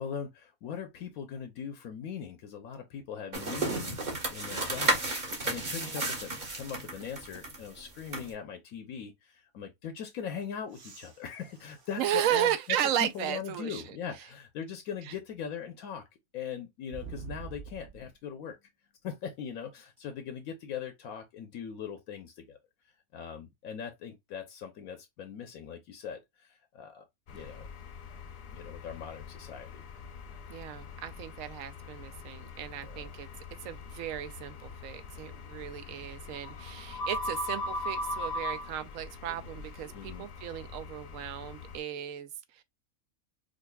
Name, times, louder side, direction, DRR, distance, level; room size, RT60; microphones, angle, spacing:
voice 1, 0.0-5.2 5.4-12.5 13.0-16.1 16.3-18.6 19.0-22.6 23.1-27.7 28.5-29.8 32.8-33.1 39.9-40.3, left 7 dB, 80° left, 1.2 m, -40 dB
sound 1, 3.3-8.3, right 2 dB, 35° right, 1.3 m, -33 dB
voice 2, 5.5-6.0 12.0-13.8 15.1-15.2 27.4-27.5 30.5-33.3 33.6-42.6, right 11 dB, 75° right, 0.9 m, -34 dB
sound 2, 10.7-13.4 14.1-14.2 16.9-18.1 20.0-20.1, right 6 dB, 55° right, 1.0 m, -48 dB
sound 3, 27.3-41.8, left 2 dB, 55° left, 0.8 m, -41 dB
5.1 x 2.4 x 2.3 m
omnidirectional pair, 1.5 m